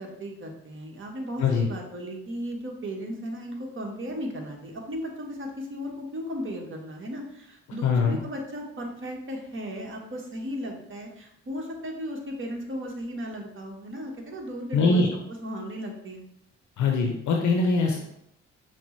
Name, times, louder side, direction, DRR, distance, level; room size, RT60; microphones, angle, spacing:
voice 1, 0.0-16.3, equal, 35° right, 1 dB, 1.1 m, -36 dB
voice 2, 7.8-8.2 14.7-15.1 16.8-18.0, left 4 dB, 55° left, 1 dB, 0.6 m, -22 dB
5.8 x 2.1 x 3.1 m, 0.77 s
hypercardioid pair, 40°, 35 cm